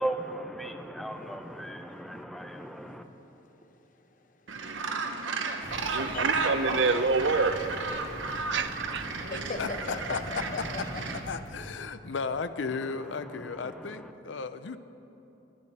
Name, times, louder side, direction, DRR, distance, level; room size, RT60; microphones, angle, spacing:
voice 1, 0.0-3.0 12.7-14.1, right 1 dB, ahead, 6 dB, 0.6 m, -37 dB
voice 2, 2.5-6.4 9.3-11.2, left 3 dB, 45° left, 7 dB, 0.8 m, -43 dB
Gull seagull, 4.5-11.2, right 4 dB, 90° right, 1.0 m, -33 dB
sound 1, 5.6-11.7, equal, 20° left, 1.9 m, -42 dB
voice 3, 5.9-7.6 8.5-9.1, right 4 dB, 70° right, 10 dB, 0.6 m, -27 dB
voice 4, 11.3-14.8, left 4 dB, 75° left, 11 dB, 0.5 m, -34 dB
19.5 x 10.5 x 4.2 m, 3.0 s
head